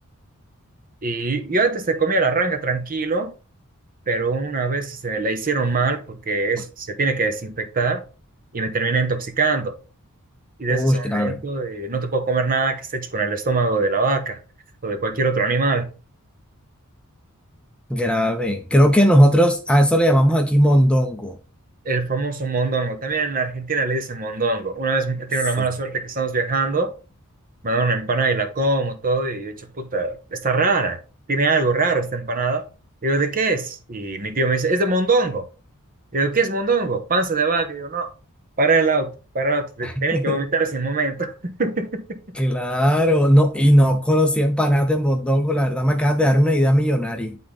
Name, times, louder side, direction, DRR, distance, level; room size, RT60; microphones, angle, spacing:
voice 1, 1.0-3.3 4.1-8.0 8.5-9.8 10.6-14.4 14.8-15.9 21.8-26.9 27.6-31.0 31.3-32.6 33.0-35.5 36.1-38.1 38.6-42.4, right 3 dB, 40° right, 1.0 m, -23 dB
voice 2, 10.7-11.4 17.9-21.4 25.6-25.7 39.8-40.4 42.4-47.4, equal, 5° left, 0.6 m, -18 dB
10.0 x 3.7 x 3.7 m
head